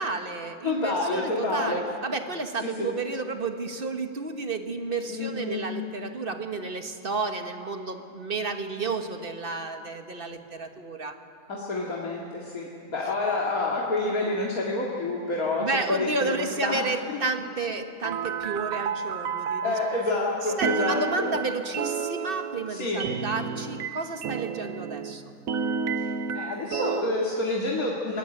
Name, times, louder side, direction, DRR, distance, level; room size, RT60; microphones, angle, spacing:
voice 1, 0.0-11.1 15.6-19.7 20.6-25.3, right 3 dB, 40° right, 6 dB, 1.5 m, -31 dB
voice 2, 0.6-1.8 2.6-2.9 5.1-5.6 11.5-15.6 16.0-17.2 19.6-21.3 22.7-23.1 26.0-28.2, left 2 dB, 75° left, -4 dB, 2.7 m, -28 dB
sound 1, 18.0-20.1 20.6-25.2 25.5-27.0, right 6 dB, 70° right, 1.2 m, -31 dB
23.0 x 19.0 x 9.1 m, 2.5 s
omnidirectional pair, 1.5 m